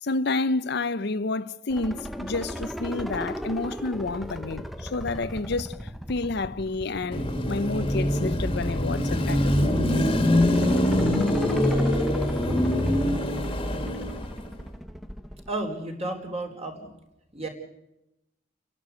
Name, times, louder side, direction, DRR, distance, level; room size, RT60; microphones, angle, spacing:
voice 1, 0.0-5.8 6.1-9.9, left 3 dB, 55° left, 0.7 m, -29 dB
sound 1, 1.7-15.5, equal, ahead, 0.7 m, -37 dB
Car passing by / Traffic noise roadway noise / Engine, 7.1-14.4, left 1 dB, 25° left, 1.9 m, -24 dB
voice 2, 15.5-16.9 17.3-17.5, right 2 dB, 35° right, 4.2 m, -32 dB
30.0 x 11.5 x 8.3 m
head